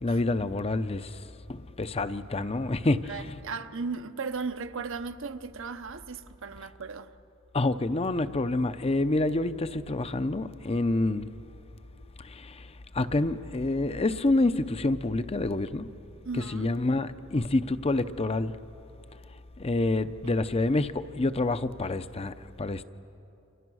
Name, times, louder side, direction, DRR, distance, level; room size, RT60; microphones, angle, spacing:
voice 1, 0.0-1.2 1.5-3.2 7.5-11.3 12.2-12.7 12.9-15.9 16.5-18.6 19.6-22.8, left 2 dB, 30° left, 0.6 m, -27 dB
voice 2, 3.1-7.1 16.2-16.7 20.2-20.3, right 4 dB, 65° right, 0.9 m, -36 dB
29.5 x 26.5 x 6.3 m
head